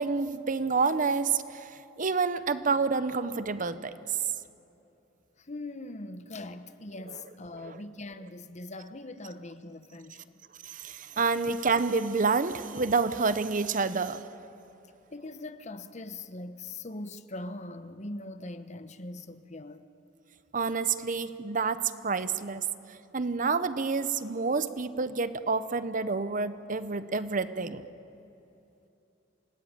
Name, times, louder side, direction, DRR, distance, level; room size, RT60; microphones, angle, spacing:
voice 1, 0.0-4.2 7.5-7.8 10.6-14.2 20.5-27.8, right 4 dB, 45° right, 0.9 m, -29 dB
voice 2, 5.4-10.4 11.1-11.2 15.1-19.8, left 2 dB, 40° left, 1.0 m, -41 dB
28.0 x 19.0 x 8.9 m
head